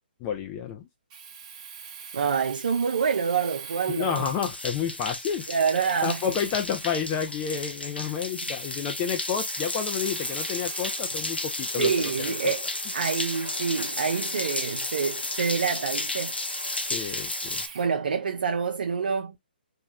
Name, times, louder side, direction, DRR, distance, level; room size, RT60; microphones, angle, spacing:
voice 1, 0.2-0.9 3.9-5.5 6.0-12.5 16.8-17.6, left 7 dB, 25° left, 0.4 m, -30 dB
Domestic sounds home sounds, 1.1-17.9, right 6 dB, 30° right, 0.8 m, -44 dB
voice 2, 2.1-4.2 5.5-6.2 11.8-12.6 12.9-16.3 17.7-19.3, right 6 dB, 65° right, 0.5 m, -27 dB
sound 1, 4.2-17.7, left 2 dB, 85° left, 0.6 m, -33 dB
2.8 x 2.2 x 3.2 m
figure-of-eight pair, 135°, 5 cm